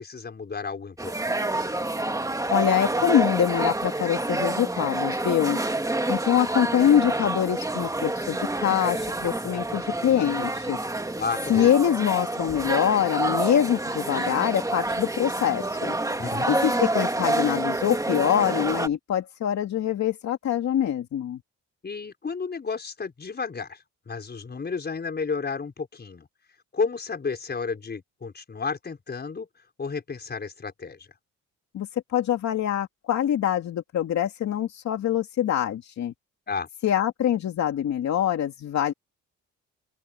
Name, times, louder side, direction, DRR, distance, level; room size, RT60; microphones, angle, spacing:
voice 1, 0.0-1.6 11.2-11.7 16.2-16.6 21.8-23.8 24.1-26.3 26.7-29.5 29.8-31.1 36.5-36.7, left 5 dB, 35° left, 4.9 m, -32 dB
sound 1, 1.0-18.9, right 2 dB, 10° right, 2.2 m, -28 dB
voice 2, 2.5-5.6 6.1-10.8 11.5-15.9 16.5-21.4 31.7-36.1 36.8-38.9, left 10 dB, 65° left, 2.3 m, -24 dB
open air
cardioid pair, 90°, 30 cm